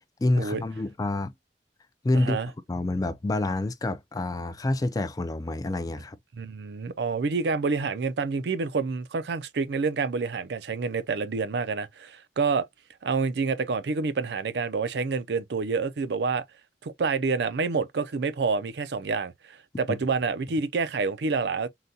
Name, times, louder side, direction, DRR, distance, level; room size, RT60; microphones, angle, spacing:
voice 1, 0.2-1.3 2.0-2.4 2.7-6.2, left 2 dB, 20° left, 0.3 m, -27 dB
voice 2, 2.1-2.5 6.4-12.7 13.0-16.4 16.8-21.7, right 4 dB, 70° right, 0.5 m, -28 dB
3.9 x 2.2 x 2.6 m
head